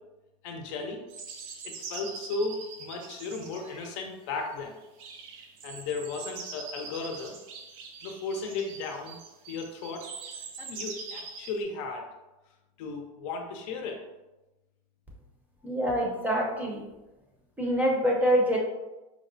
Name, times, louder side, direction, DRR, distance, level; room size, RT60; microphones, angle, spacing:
voice 1, 0.4-1.0 1.6-4.8 5.6-7.4 8.0-9.2 9.5-10.0 10.6-12.1 12.8-14.0, left 3 dB, 60° left, 2 dB, 0.6 m, -35 dB
sound 1, 1.1-4.0 4.5-11.6, right 5 dB, 65° right, 0.6 m, -43 dB
voice 2, 15.6-16.8 17.6-18.6, equal, 10° right, -3 dB, 0.6 m, -25 dB
4.7 x 2.1 x 2.6 m, 1.0 s
supercardioid pair, 140°, 18 cm